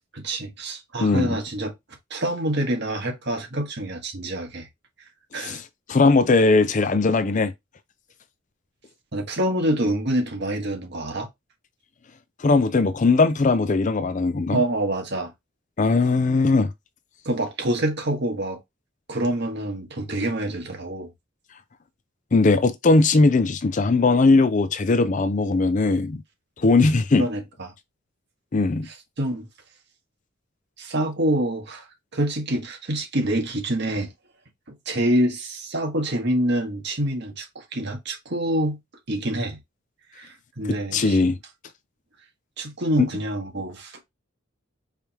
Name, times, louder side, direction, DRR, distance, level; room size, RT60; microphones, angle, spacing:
voice 1, 0.1-1.7 2.1-4.7 5.3-5.6 9.1-11.3 14.5-15.3 17.2-18.6 19.1-21.1 27.2-27.7 28.8-29.5 30.8-31.9 32.1-34.1 34.8-38.8 39.1-39.6 40.2-41.2 42.6-44.0, right 1 dB, 55° right, 1.4 m, -26 dB
voice 2, 5.9-7.5 12.4-14.6 15.8-16.7 22.3-26.2 26.6-27.2 28.5-28.9 40.9-41.4 43.0-43.1, left 3 dB, 40° left, 0.5 m, -19 dB
4.8 x 3.3 x 2.9 m
head